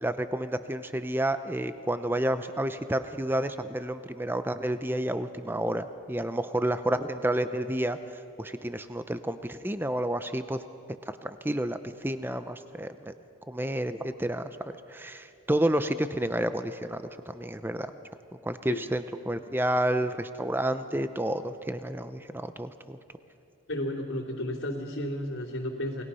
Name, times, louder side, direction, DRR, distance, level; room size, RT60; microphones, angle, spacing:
voice 1, 0.0-10.6 11.2-13.1 13.5-14.5 14.9-17.9 18.4-23.0, right 1 dB, 10° right, 10 dB, 0.7 m, -30 dB
voice 2, 23.7-26.0, left 1 dB, 75° left, -8 dB, 2.9 m, -33 dB
29.0 x 20.5 x 5.6 m, 2.7 s
head